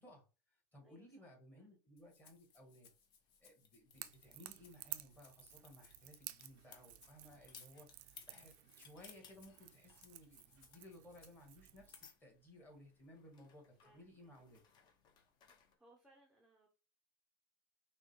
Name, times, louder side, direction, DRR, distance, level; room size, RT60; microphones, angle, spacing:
voice 1, 0.0-2.9 3.4-14.6, left 1 dB, 15° left, 0 dB, 1.4 m, -60 dB
voice 2, 0.8-1.3 1.5-1.7 13.8-14.9 15.5-16.7, right 2 dB, 5° right, 0 dB, 0.5 m, -69 dB
Rattle (instrument), 2.0-11.6, left 6 dB, 75° left, 1.0 m, -69 dB
sound 1, 2.0-15.7, left 6 dB, 40° left, 0.7 m, -65 dB
Crackle / Crack, 3.9-12.1, right 16 dB, 65° right, 0.4 m, -54 dB
5.9 x 2.1 x 3.0 m, 0.34 s
supercardioid pair, 150°, 11 cm